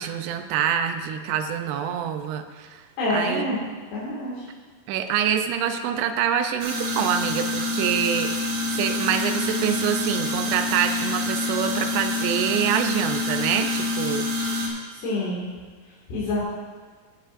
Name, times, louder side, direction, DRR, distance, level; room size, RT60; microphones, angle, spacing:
voice 1, 0.0-2.9 3.1-3.8 4.9-14.3, right 9 dB, 80° right, 7 dB, 2.7 m, -26 dB
voice 2, 3.0-3.6 3.9-4.5 14.9-15.5 16.1-16.4, left 2 dB, 75° left, -8 dB, 4.3 m, -27 dB
sound 1, 6.6-14.7, left 2 dB, 60° right, 2.6 m, -27 dB
16.0 x 10.5 x 2.6 m, 1.5 s
omnidirectional pair, 4.9 m